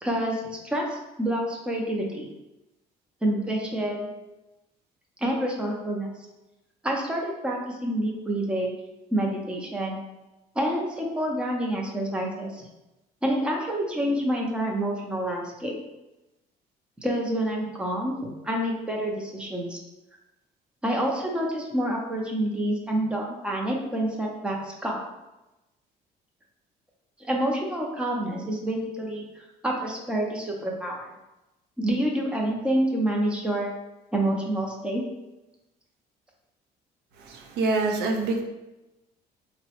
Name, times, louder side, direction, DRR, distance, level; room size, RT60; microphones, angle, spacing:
voice 1, 0.0-2.3 3.2-4.1 5.2-6.1 6.8-8.8 9.1-9.9 10.5-12.7 13.2-15.7 17.0-19.8 20.8-25.0 27.2-31.1 31.8-33.7 34.1-35.0, right 1 dB, 5° right, -1 dB, 0.5 m, -28 dB
voice 2, 37.2-38.4, right 3 dB, 75° right, 2 dB, 0.5 m, -26 dB
3.6 x 2.1 x 2.8 m, 0.99 s
cardioid pair, 110°, 17 cm